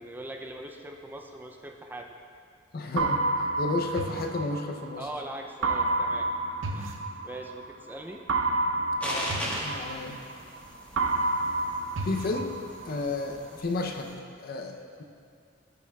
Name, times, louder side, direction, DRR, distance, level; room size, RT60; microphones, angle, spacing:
voice 1, 0.0-2.1 4.9-6.3 6.7-8.2, right 1 dB, 10° right, 2 dB, 0.4 m, -41 dB
voice 2, 2.7-5.1 9.0-10.2 12.0-12.5 12.9-14.1 14.4-15.0, left 3 dB, 50° left, 4 dB, 0.6 m, -32 dB
sound 1, 3.0-5.0 5.6-7.7 8.3-10.6 11.0-13.0, right 2 dB, 75° right, 0.7 m, -29 dB
sound 2, 9.0-14.1, equal, 10° left, 1.2 m, -39 dB
14.0 x 7.0 x 2.3 m, 2.3 s
head